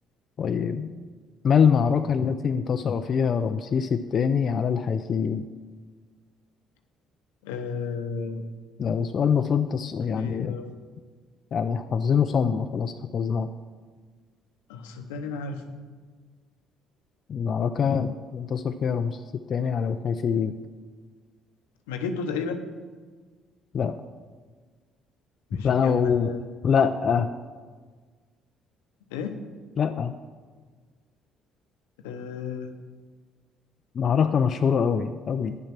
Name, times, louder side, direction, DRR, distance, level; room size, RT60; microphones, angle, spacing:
voice 1, 0.4-0.9 1.4-5.5 8.8-10.6 11.5-13.5 17.3-19.2 19.5-20.5 23.7-23.9 25.5-26.3 26.6-27.3 29.8-30.1 34.0-35.6, left 7 dB, 50° left, 8 dB, 0.5 m, -24 dB
voice 2, 7.4-8.4 10.1-10.7 14.7-15.7 21.9-22.6 25.5-26.4 29.1-29.4 32.0-32.7, left 5 dB, 85° left, 6 dB, 0.8 m, -33 dB
9.8 x 7.4 x 5.9 m, 1.5 s
hypercardioid pair, 60°, 0 cm